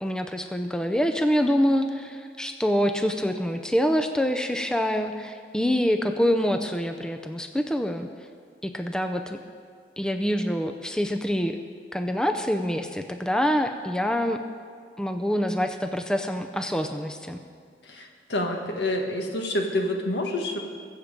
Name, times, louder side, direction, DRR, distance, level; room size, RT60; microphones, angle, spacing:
voice 1, 0.0-8.1 8.6-9.4 10.0-11.6 11.9-14.4 15.0-17.4, equal, 5° left, 6 dB, 0.5 m, -26 dB
voice 2, 17.9-20.6, left 1 dB, 75° left, 2 dB, 1.7 m, -28 dB
22.5 x 7.6 x 5.2 m, 2.1 s
head